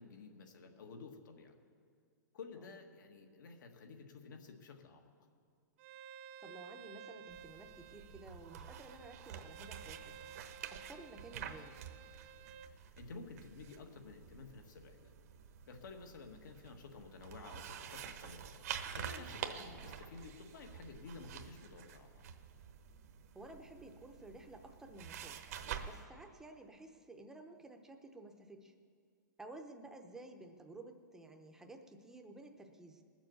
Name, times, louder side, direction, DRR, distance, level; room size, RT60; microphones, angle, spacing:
voice 1, 0.0-1.5 2.3-5.1 12.6-15.1 15.7-18.5 18.9-22.2, left 4 dB, 75° left, 4 dB, 1.7 m, -52 dB
Bowed string instrument, 5.8-12.7, right 8 dB, 35° right, 0.4 m, -54 dB
voice 2, 6.4-10.2 10.7-11.8 19.5-19.8 23.3-25.4 25.8-28.7 29.4-33.0, right 2 dB, 5° right, 4 dB, 0.7 m, -53 dB
sound 1, 7.3-26.0, right 8 dB, 55° right, 0.9 m, -48 dB
19.5 x 7.2 x 7.0 m, 2.1 s
hypercardioid pair, 160°, 10 cm